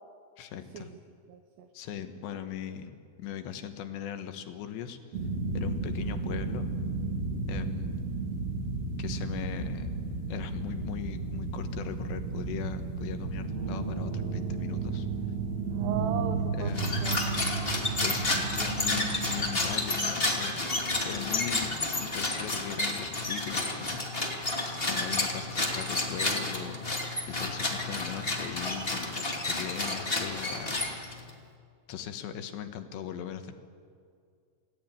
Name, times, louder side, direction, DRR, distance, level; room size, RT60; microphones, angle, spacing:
voice 1, 0.4-0.9 1.7-5.0 5.5-6.7 7.5-8.1 9.0-9.9 10.3-15.1 16.6-17.1 18.0-20.6 21.1-24.1 24.8-26.9 27.3-30.8 31.9-33.6, left 9 dB, 80° left, 8 dB, 3.6 m, -39 dB
voice 2, 1.3-1.7 15.7-16.7 17.0-17.5, right 9 dB, 75° right, 6 dB, 3.2 m, -37 dB
sound 1, 5.1-19.6, right 3 dB, 45° right, 3.0 m, -33 dB
sound 2, 16.7-31.3, left 2 dB, 20° left, 1.8 m, -31 dB
27.5 x 17.0 x 9.1 m, 2.3 s
omnidirectional pair, 5.0 m